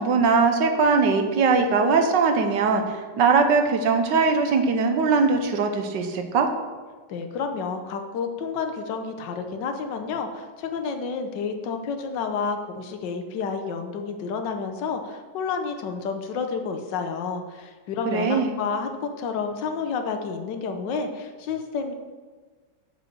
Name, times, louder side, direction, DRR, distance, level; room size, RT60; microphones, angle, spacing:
voice 1, 0.0-6.5 18.1-18.6, right 4 dB, 80° right, 5 dB, 1.6 m, -21 dB
voice 2, 7.1-21.9, left 5 dB, 80° left, 6 dB, 1.5 m, -30 dB
7.2 x 5.7 x 7.5 m, 1.4 s
omnidirectional pair, 1.9 m